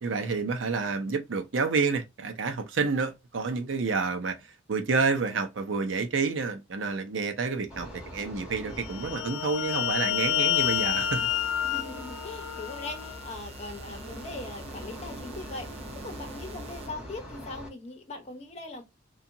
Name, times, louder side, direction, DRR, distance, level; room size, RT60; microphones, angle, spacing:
voice 1, 0.0-4.4 4.7-11.3, right 4 dB, 80° right, 0.6 m, -29 dB
sound 1, 7.7-17.7, left 2 dB, 5° right, 1.0 m, -43 dB
sound 2, 8.9-13.3, left 12 dB, 80° left, 0.3 m, -29 dB
sound 3, 10.6-16.9, right 2 dB, 30° right, 0.4 m, -45 dB
voice 2, 11.6-18.8, left 2 dB, 35° left, 0.8 m, -40 dB
2.7 x 2.3 x 2.6 m
head